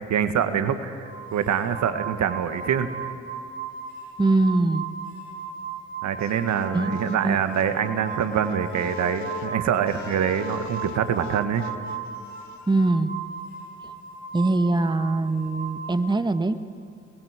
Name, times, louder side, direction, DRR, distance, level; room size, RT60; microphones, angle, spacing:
voice 1, 0.1-2.9 6.0-11.7, right 8 dB, 60° right, 10 dB, 1.7 m, -25 dB
sound 1, 1.0-16.0, right 6 dB, 90° right, 7.6 m, -37 dB
voice 2, 4.2-4.8 6.7-7.4 12.7-13.1 14.3-16.5, right 2 dB, 15° right, 10 dB, 1.5 m, -22 dB
sound 2, 6.2-12.9, left 6 dB, 60° left, 1.7 m, -40 dB
27.5 x 21.0 x 8.2 m, 2.4 s
hypercardioid pair, 45°, 32 cm